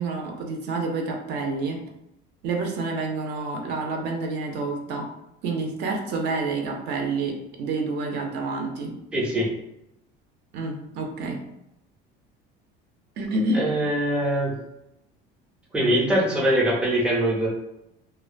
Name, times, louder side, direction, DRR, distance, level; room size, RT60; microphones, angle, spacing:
voice 1, 0.0-1.8 2.4-5.1 5.4-9.0 10.5-11.4 13.2-13.7, right 3 dB, 55° right, 2 dB, 0.5 m, -28 dB
voice 2, 9.1-9.5 13.5-14.5 15.7-17.5, right 1 dB, 5° right, -5 dB, 0.4 m, -22 dB
2.5 x 2.1 x 2.5 m, 0.85 s
cardioid pair, 160°, 21 cm